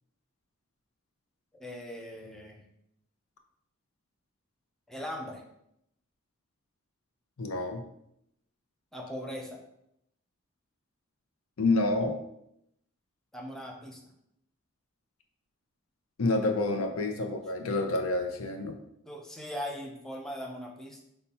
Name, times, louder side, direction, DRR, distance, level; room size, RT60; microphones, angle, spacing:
voice 1, 1.6-2.6 4.9-5.4 8.9-9.6 13.3-14.0 19.1-21.0, equal, ahead, 0 dB, 0.5 m, -39 dB
voice 2, 7.4-7.8 11.6-12.2 16.2-18.8, left 2 dB, 90° left, 5 dB, 0.6 m, -28 dB
5.4 x 2.2 x 4.2 m, 0.78 s
head